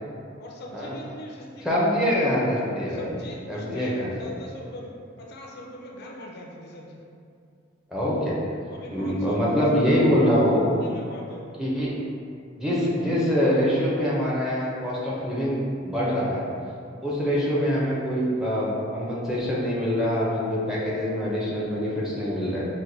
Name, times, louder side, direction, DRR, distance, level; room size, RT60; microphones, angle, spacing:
voice 1, 0.4-1.9 2.9-7.0 8.7-9.7 10.8-11.6 17.0-17.2, left 1 dB, 55° left, -1 dB, 0.4 m, -41 dB
voice 2, 1.6-3.1 3.5-4.1 7.9-8.4 8.9-10.6 11.6-11.9 12.6-16.4 17.0-22.6, equal, 5° right, -7 dB, 0.5 m, -24 dB
4.4 x 2.1 x 2.7 m, 2.4 s
head